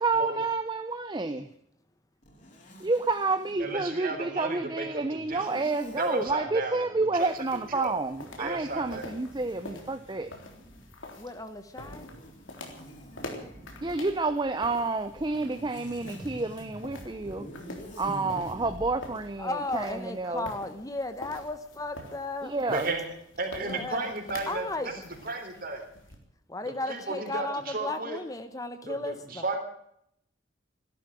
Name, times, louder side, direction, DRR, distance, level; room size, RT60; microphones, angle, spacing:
voice 1, 0.0-1.5 2.8-10.3 13.8-17.5 18.0-20.5 22.4-22.9, right 3 dB, 25° right, 10 dB, 0.7 m, -29 dB
Zipper (clothing), 2.2-3.6 5.2-6.3 7.8-11.0 11.8-14.0 15.0-19.0, equal, 40° left, 4.3 m, -46 dB
voice 2, 3.6-5.6 6.0-6.9 7.1-7.9 8.4-9.1 22.7-23.0 23.4-25.8 26.9-28.2 28.8-29.6, right 2 dB, 50° right, 5 dB, 3.6 m, -34 dB
sound 1, 7.1-26.2, left 2 dB, 85° left, 3.5 m, -47 dB
voice 3, 11.2-12.1 19.4-22.5 23.6-24.1 24.5-24.9 26.5-29.4, left 2 dB, 20° left, 9 dB, 1.0 m, -35 dB
15.0 x 12.5 x 7.6 m, 0.72 s
head